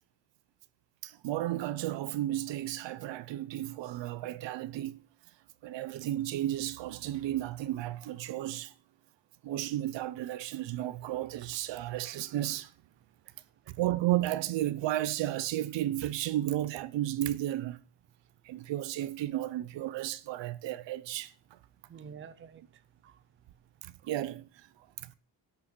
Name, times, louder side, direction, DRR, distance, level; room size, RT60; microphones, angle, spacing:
voice 1, 1.0-5.0 5.6-8.7 9.4-12.7 13.8-17.8 18.4-21.6 23.8-24.7 25.0-25.1, right 14 dB, 65° right, 0.7 m, -33 dB
voice 2, 21.9-23.2, right 7 dB, 25° right, 0.6 m, -50 dB
11.5 x 6.2 x 7.9 m
cardioid pair, 180°, 47 cm